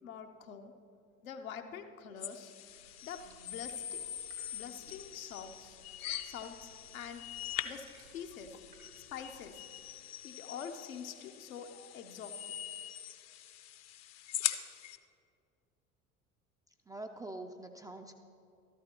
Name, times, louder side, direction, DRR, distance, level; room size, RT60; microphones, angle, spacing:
voice 1, 0.0-0.8 1.2-2.5 3.0-4.1 4.5-5.8 6.2-7.3 7.6-8.6 9.0-9.9 10.2-12.4, left 7 dB, 75° left, 5 dB, 0.8 m, -46 dB
sound 1, 2.2-15.0, left 11 dB, 40° left, 0.6 m, -43 dB
sound 2, 2.6-9.9, right 2 dB, 85° right, 2.4 m, -61 dB
voice 2, 16.9-18.1, right 2 dB, 10° right, 4 dB, 0.3 m, -44 dB
13.0 x 11.5 x 2.9 m, 2.6 s
figure-of-eight pair, 65°, 42 cm